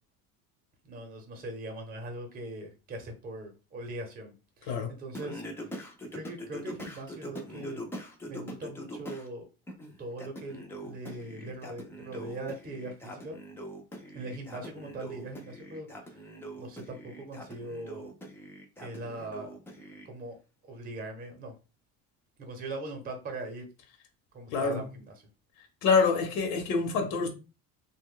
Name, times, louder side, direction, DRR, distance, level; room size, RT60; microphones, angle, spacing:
voice 1, 0.8-5.7 6.1-7.8 8.2-9.5 10.0-13.4 14.1-16.2 16.6-18.1 18.8-19.5 20.0-20.4 20.7-21.6 22.4-23.6 24.3-25.3, right 2 dB, 25° right, 0.7 m, -41 dB
Singing, 5.1-9.3 9.7-20.1, equal, 5° left, 0.3 m, -43 dB
voice 2, 24.5-24.8 25.8-27.3, left 5 dB, 85° left, 0.8 m, -26 dB
2.9 x 2.2 x 3.6 m
cardioid pair, 160°, 34 cm